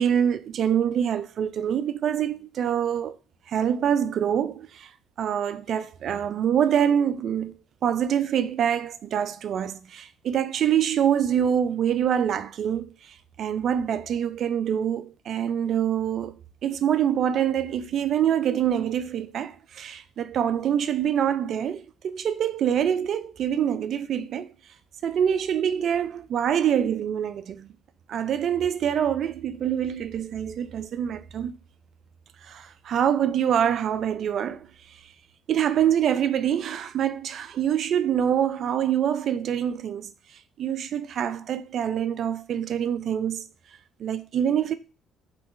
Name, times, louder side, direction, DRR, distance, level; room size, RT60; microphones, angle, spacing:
voice 1, 0.0-3.2 3.5-4.9 5.2-7.5 7.8-12.9 13.4-24.5 25.0-27.7 28.1-31.5 32.5-34.7 35.5-40.1 40.6-43.4 44.0-44.7, right 9 dB, 60° right, 0.3 m, -25 dB
3.6 x 3.0 x 2.5 m
supercardioid pair, 80°, 0 cm